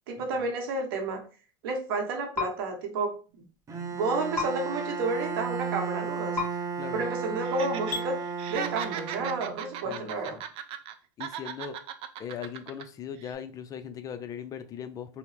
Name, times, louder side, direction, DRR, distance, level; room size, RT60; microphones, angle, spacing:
voice 1, 0.1-1.2 1.6-3.2 3.9-6.4 6.9-8.2 8.5-10.4, right 3 dB, 75° right, 0.9 m, -31 dB
sound 1, 2.3-2.5 4.3-4.5 6.3-6.5 7.9-8.0, left 5 dB, 15° left, 1.2 m, -29 dB
Bowed string instrument, 3.7-9.8, right 5 dB, 25° right, 0.7 m, -34 dB
Laughter, 7.4-8.0 8.3-10.9 11.2-12.8 13.2-13.3, right 10 dB, 50° right, 0.4 m, -38 dB
voice 2, 9.8-10.4 11.2-11.8 12.2-15.2, left 8 dB, 30° left, 0.4 m, -39 dB
2.8 x 2.0 x 3.2 m
supercardioid pair, 105°, 12 cm